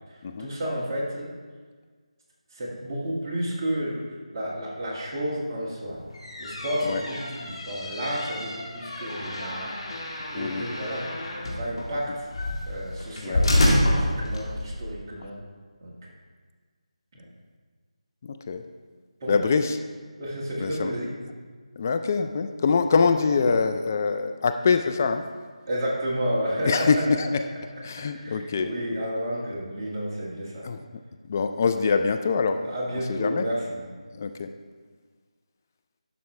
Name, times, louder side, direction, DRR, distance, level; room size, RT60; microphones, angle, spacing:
voice 1, 0.1-1.4 2.5-4.0 4.3-6.0 6.4-9.8 10.3-11.1 11.6-12.2 12.7-15.4 15.8-15.9 19.2-19.4 20.2-21.1 25.6-27.0 28.1-30.7 32.6-33.8, equal, 25° right, -5 dB, 1.6 m, -31 dB
sound 1, 6.0-14.8, left 1 dB, 50° left, 1.9 m, -28 dB
voice 2, 10.3-10.7 13.2-13.4 18.2-18.6 19.3-19.8 20.6-20.9 21.8-25.3 26.6-27.4 27.8-29.1 30.6-31.0 31.3-32.6 33.1-33.4 34.1-34.5, left 5 dB, 25° left, 7 dB, 0.4 m, -24 dB
11.5 x 5.7 x 3.2 m, 1.5 s
figure-of-eight pair, 165°, 4 cm